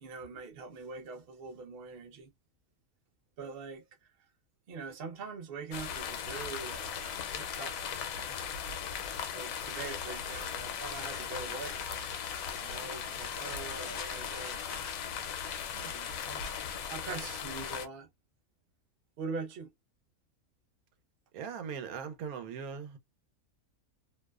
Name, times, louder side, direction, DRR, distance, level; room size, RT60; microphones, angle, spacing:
voice 1, 0.0-2.3 3.4-3.9 4.7-8.4 9.3-12.0 12.6-14.9 15.7-16.4 16.9-18.1 19.2-19.7, right 4 dB, 50° right, 0.8 m, -43 dB
sound 1, 5.7-17.9, left 7 dB, 75° left, 1.0 m, -38 dB
sound 2, 9.6-16.8, left 5 dB, 55° left, 0.4 m, -49 dB
voice 2, 21.3-23.0, right 7 dB, 85° right, 1.1 m, -39 dB
2.6 x 2.1 x 2.3 m
omnidirectional pair, 1.5 m